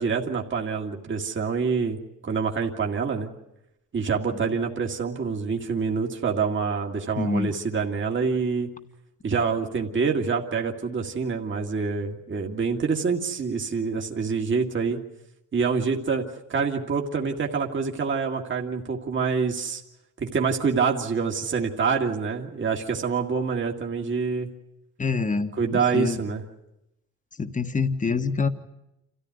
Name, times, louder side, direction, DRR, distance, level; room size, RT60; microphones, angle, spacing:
voice 1, 0.0-2.0 2.2-3.3 3.9-8.7 9.2-15.0 15.5-16.2 16.5-19.8 20.2-24.5 25.6-26.4, right 5 dB, 40° right, 2 dB, 2.1 m, -26 dB
voice 2, 7.2-7.5 25.0-26.2 27.4-28.5, left 4 dB, 25° left, 9 dB, 1.4 m, -26 dB
27.5 x 14.5 x 9.5 m, 0.89 s
cardioid pair, 90°, 30 cm